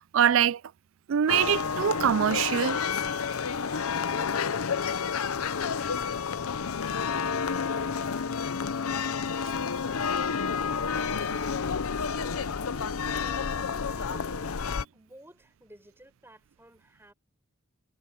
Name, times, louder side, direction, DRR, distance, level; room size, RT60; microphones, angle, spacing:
voice 1, 0.1-0.6 1.1-2.8, right 9 dB, 70° right, 0.4 m, -23 dB
sound 1, 1.3-14.8, left 6 dB, 90° left, 0.7 m, -30 dB
sound 2, 2.6-6.3, left 5 dB, 20° left, 4.3 m, -59 dB
voice 2, 12.1-14.5 14.9-17.1, right 1 dB, 10° right, 6.8 m, -52 dB
head